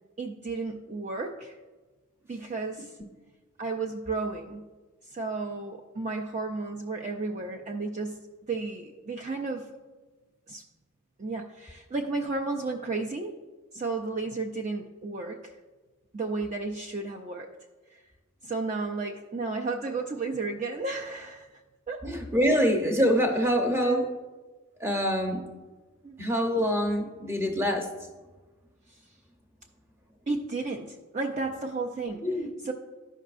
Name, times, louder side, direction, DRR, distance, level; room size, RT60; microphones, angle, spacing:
voice 1, 0.2-1.6 2.3-3.0 3.6-4.6 5.1-8.2 8.5-9.7 10.5-10.6 11.2-13.3 13.7-15.5 16.1-17.5 17.9-18.0 18.4-21.6 21.9-22.0 23.7-24.1 26.0-26.2 28.9-29.0 30.3-32.2 32.6-32.7, right 3 dB, 35° right, 1 dB, 0.4 m, -33 dB
voice 2, 22.0-24.1 24.8-25.5 26.2-27.9 32.2-32.5, equal, 10° right, 3 dB, 0.8 m, -25 dB
12.5 x 5.4 x 2.5 m, 1.3 s
head